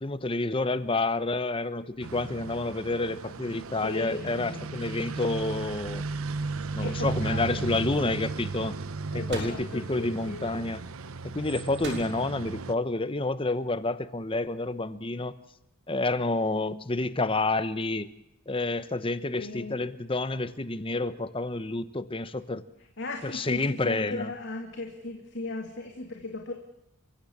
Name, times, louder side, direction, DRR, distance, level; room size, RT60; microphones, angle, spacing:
voice 1, 0.0-6.0 6.7-8.8 9.1-10.8 11.2-15.4 15.9-18.1 18.5-22.6 23.2-24.3, left 2 dB, 25° left, 13 dB, 0.9 m, -29 dB
sound 1, 2.0-12.7, right 3 dB, 80° right, 0.9 m, -36 dB
voice 2, 3.8-4.6 6.8-7.6 9.1-10.5 19.4-19.8 23.0-26.5, left 2 dB, 55° left, 2 dB, 2.6 m, -37 dB
sound 2, 9.3-9.8 11.8-12.5, right 1 dB, 55° right, 6.3 m, -37 dB
30.0 x 16.0 x 7.2 m, 0.85 s
head